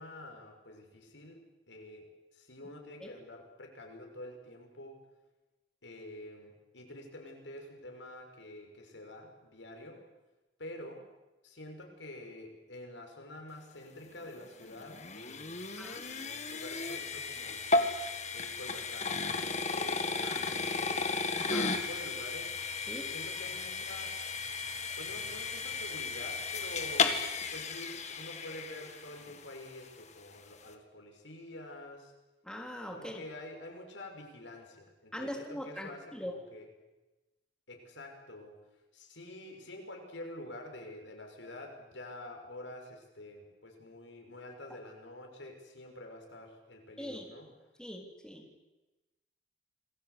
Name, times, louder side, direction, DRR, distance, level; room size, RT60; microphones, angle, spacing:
voice 1, 0.0-5.0 5.8-10.0 10.6-11.1 11.4-17.7 18.3-21.2 21.5-22.5 23.1-24.1 25.0-27.2 27.5-32.1 32.9-36.7 37.7-38.6 38.9-47.5, left 1 dB, 90° left, 3 dB, 6.6 m, -48 dB
sound 1, 14.2-29.4, left 4 dB, 40° left, 2.2 m, -34 dB
voice 2, 21.4-21.7 22.9-23.1 32.4-33.2 35.1-36.4 47.0-47.3 47.8-48.4, equal, 5° left, 1 dB, 3.5 m, -41 dB
28.0 x 21.0 x 8.6 m, 1.1 s
head